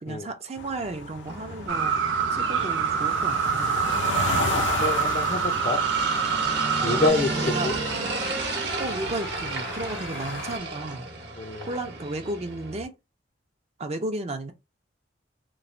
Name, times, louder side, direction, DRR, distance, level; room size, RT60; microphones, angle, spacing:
voice 1, 0.0-2.0 2.3-3.9 6.8-7.7 8.8-11.1 11.7-12.9 13.8-14.5, right 2 dB, 35° right, 0.5 m, -33 dB
sound 1, 0.6-10.6, left 3 dB, 85° left, 0.6 m, -34 dB
sound 2, 1.3-12.8, right 3 dB, 60° right, 0.8 m, -33 dB
sound 3, 1.7-7.1, right 6 dB, 90° right, 0.4 m, -25 dB
voice 2, 4.8-5.8 6.1-6.3 6.7-7.7 11.4-11.7, left 2 dB, 35° left, 0.4 m, -27 dB
3.0 x 2.1 x 2.5 m
head